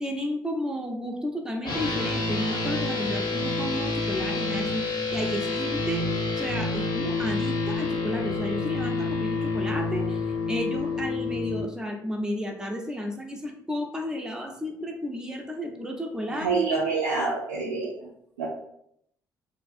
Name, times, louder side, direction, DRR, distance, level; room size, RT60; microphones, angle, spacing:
voice 1, 0.0-6.1 6.4-16.5, equal, 5° right, 2 dB, 0.5 m, -32 dB
sound 1, 1.6-11.6, left 3 dB, 50° left, 0.8 m, -28 dB
voice 2, 16.3-17.9 18.4-18.5, right 4 dB, 90° right, -5 dB, 0.4 m, -26 dB
2.6 x 2.3 x 2.5 m, 0.73 s
hypercardioid pair, 55°, 10 cm